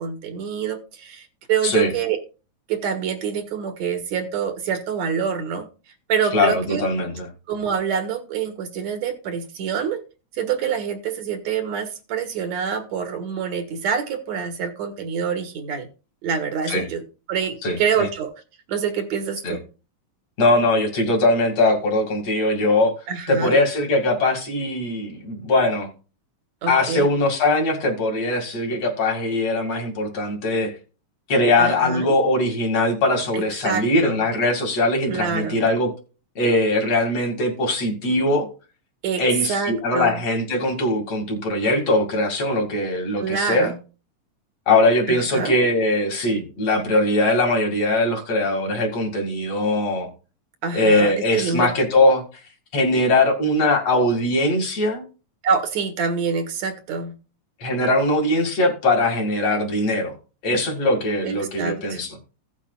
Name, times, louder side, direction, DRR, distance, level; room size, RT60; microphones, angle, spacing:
voice 1, 0.0-2.2 2.7-5.6 6.1-6.8 7.5-10.0 10.3-15.9 16.2-17.0 17.3-18.3 18.7-19.6 23.1-23.6 26.6-27.1 31.6-32.1 33.3-34.2 35.1-35.6 39.0-39.2 39.5-40.2 43.2-43.8 45.1-45.5 50.6-51.7 55.4-57.1 61.2-62.0, right 6 dB, 70° right, 6 dB, 2.6 m, -26 dB
voice 2, 6.3-7.3 16.7-16.8 17.6-18.1 19.4-19.6 20.4-22.9 23.3-25.9 26.7-30.7 31.3-35.9 36.4-38.5 39.2-43.7 44.7-50.1 50.7-52.2 52.7-55.0 57.6-60.1 60.4-62.1, left 2 dB, 60° left, 1 dB, 3.3 m, -21 dB
16.5 x 7.3 x 2.4 m, 0.34 s
omnidirectional pair, 3.4 m